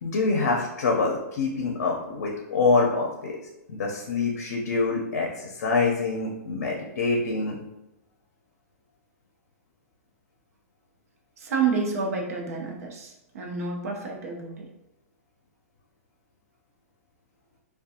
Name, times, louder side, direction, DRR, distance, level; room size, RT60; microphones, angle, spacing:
voice 1, 0.0-3.4 3.7-7.6, left 3 dB, 75° left, 0 dB, 0.5 m, -25 dB
voice 2, 11.4-14.7, right 5 dB, 65° right, 1 dB, 0.6 m, -29 dB
2.5 x 2.2 x 2.7 m, 0.92 s
hypercardioid pair, 165°, 8 cm